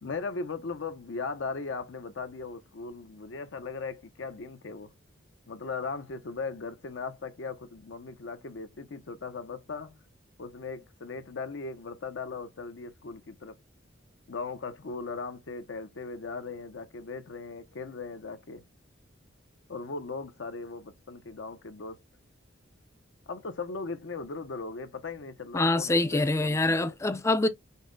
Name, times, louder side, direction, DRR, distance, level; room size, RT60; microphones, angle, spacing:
voice 1, 0.0-4.9 5.5-10.0 10.4-13.6 14.3-18.6 19.7-22.0 23.3-26.9, left 4 dB, 70° left, 0.6 m, -38 dB
voice 2, 25.5-27.5, left 2 dB, 15° left, 0.4 m, -25 dB
5.4 x 2.0 x 3.7 m
head